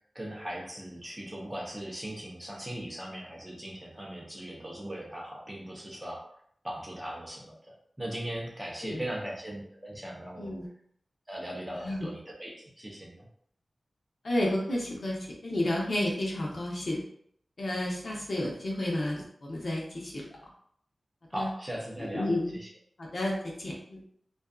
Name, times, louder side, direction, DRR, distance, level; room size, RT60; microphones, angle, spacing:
voice 1, 0.1-6.3 6.6-10.6 11.3-13.3 21.3-22.7, right 1 dB, 15° right, -2 dB, 0.6 m, -39 dB
voice 2, 11.7-12.1 14.2-15.2 15.4-17.0 17.6-20.2 21.3-21.5 22.1-22.6 23.0-24.0, left 1 dB, 65° left, -3 dB, 0.7 m, -31 dB
2.5 x 2.3 x 2.3 m, 0.65 s
wide cardioid pair, 70°, 0 cm